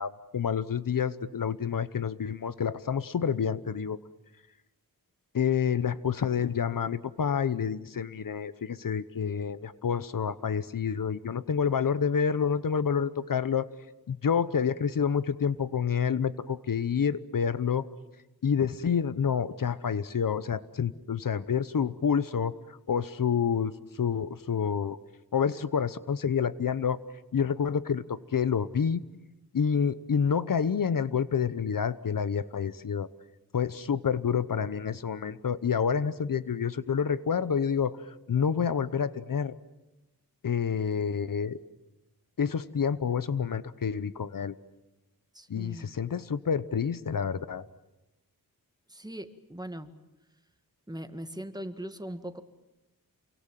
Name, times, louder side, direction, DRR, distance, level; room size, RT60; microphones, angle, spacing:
voice 1, 0.0-4.0 5.3-13.7 14.1-17.9 18.4-23.7 24.0-25.0 25.3-27.0 27.3-29.0 29.5-33.1 33.5-38.0 38.3-39.5 40.4-41.6 42.4-44.5 45.5-47.7, left 7 dB, 65° left, 15 dB, 0.9 m, -28 dB
voice 2, 45.3-46.0 48.9-49.9 50.9-52.4, right 1 dB, 10° right, 9 dB, 1.8 m, -40 dB
28.5 x 24.0 x 7.5 m, 1.0 s
wide cardioid pair, 85°, 36 cm